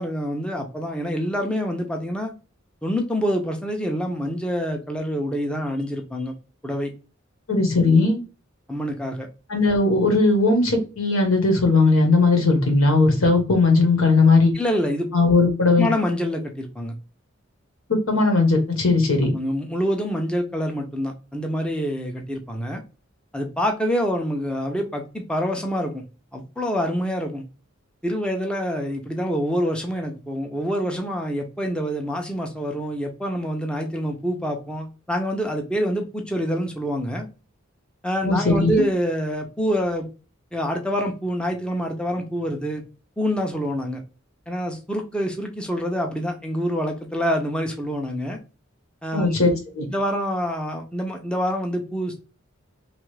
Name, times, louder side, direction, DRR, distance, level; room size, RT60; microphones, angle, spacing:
voice 1, 0.0-2.3 2.8-6.3 6.6-6.9 8.7-9.3 14.5-15.1 15.8-16.9 19.3-22.8 23.3-26.0 26.3-27.4 28.0-37.3 38.0-40.1 40.5-42.8 43.2-44.0 44.5-48.4 49.0-49.4 49.9-52.2, equal, 5° left, 0.5 m, -26 dB
voice 2, 7.5-8.2 9.5-14.5 15.1-15.9 17.9-19.3 38.2-38.9 49.1-49.9, left 3 dB, 85° left, 1.1 m, -18 dB
3.0 x 2.4 x 3.1 m
head